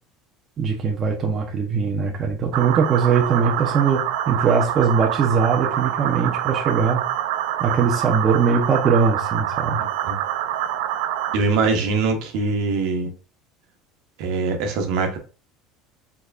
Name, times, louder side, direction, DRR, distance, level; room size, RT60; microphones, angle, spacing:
voice 1, 0.6-7.0 7.6-9.8, right 6 dB, 30° right, 1 dB, 0.8 m, -21 dB
sound 1, 2.5-11.4, right 11 dB, 85° right, 0.5 m, -26 dB
voice 2, 11.3-13.1 14.2-15.2, right 4 dB, 65° right, 4 dB, 1.1 m, -22 dB
4.6 x 4.1 x 2.4 m, 0.36 s
cardioid pair, 145°, 0 cm